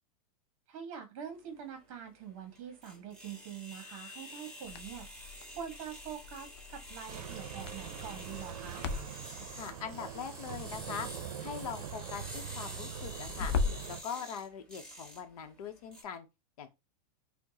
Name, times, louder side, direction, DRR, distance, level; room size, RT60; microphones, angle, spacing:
voice 1, 0.7-8.9, right 8 dB, 35° right, 1.0 m, -45 dB
sound 1, 1.3-16.0, equal, 5° left, 0.7 m, -49 dB
Crackle, 4.6-13.9, left 5 dB, 45° left, 0.4 m, -40 dB
sound 2, 7.1-14.0, right 9 dB, 65° right, 0.6 m, -43 dB
voice 2, 9.5-11.1 11.4-13.5 13.9-16.3 16.6-16.7, left 7 dB, 65° left, 0.8 m, -42 dB
4.6 x 2.1 x 2.7 m
supercardioid pair, 170°, 20 cm